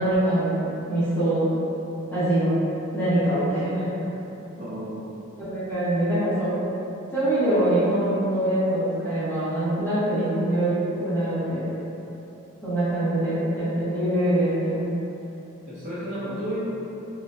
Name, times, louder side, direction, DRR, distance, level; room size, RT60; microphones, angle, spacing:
voice 1, 0.0-1.5 2.1-2.6 2.9-3.9 5.4-6.6 7.1-11.6 12.6-14.9, right 1 dB, 10° left, -15 dB, 1.0 m, -24 dB
voice 2, 4.6-5.2 15.7-16.6, right 1 dB, 40° right, -12 dB, 0.6 m, -32 dB
2.8 x 2.5 x 2.2 m, 2.9 s
head